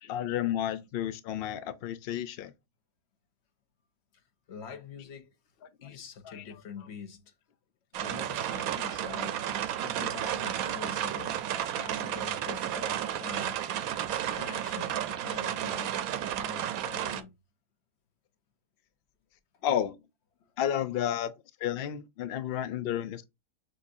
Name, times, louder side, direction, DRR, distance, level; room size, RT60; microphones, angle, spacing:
voice 1, 0.0-2.5 6.3-6.4 14.1-14.2 19.6-20.0 20.6-21.3 21.6-23.3, left 10 dB, 70° left, 0.5 m, -31 dB
voice 2, 4.1-5.3 5.8-7.3 7.9-11.5 11.7-13.6 14.2-16.0 16.4-17.3, left 6 dB, 55° left, 1.0 m, -45 dB
sound 1, 7.9-17.2, right 11 dB, 85° right, 1.0 m, -32 dB
6.7 x 2.6 x 2.6 m
omnidirectional pair, 1.5 m